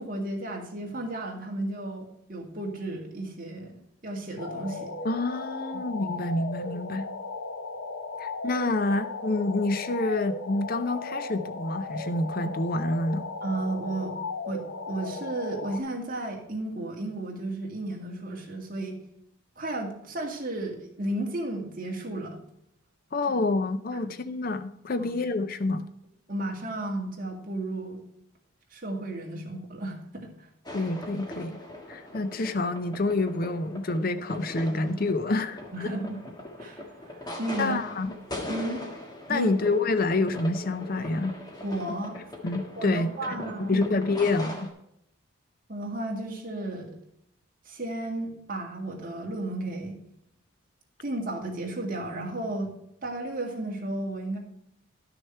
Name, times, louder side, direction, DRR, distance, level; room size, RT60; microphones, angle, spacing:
voice 1, 0.0-4.9 5.7-5.9 13.4-14.2 14.5-19.0 19.6-22.4 23.9-24.1 24.9-25.1 26.3-28.0 28.7-30.5 35.7-36.2 36.6-37.9 38.5-38.8 39.3-39.5 41.6-42.2 42.8-43.8 45.7-46.9 47.7-50.0 51.0-52.7 53.0-54.4, right 1 dB, 40° right, 2.1 m, -33 dB
sound 1, 4.4-15.8, left 3 dB, 80° left, 1.0 m, -36 dB
voice 2, 5.0-7.1 8.2-13.3 23.1-25.8 30.7-31.6 31.9-35.9 37.6-38.1 39.3-41.3 42.4-44.7, left 2 dB, 45° left, 0.5 m, -28 dB
sound 2, 30.7-44.7, left 1 dB, 20° left, 1.4 m, -40 dB
12.0 x 6.5 x 4.4 m
head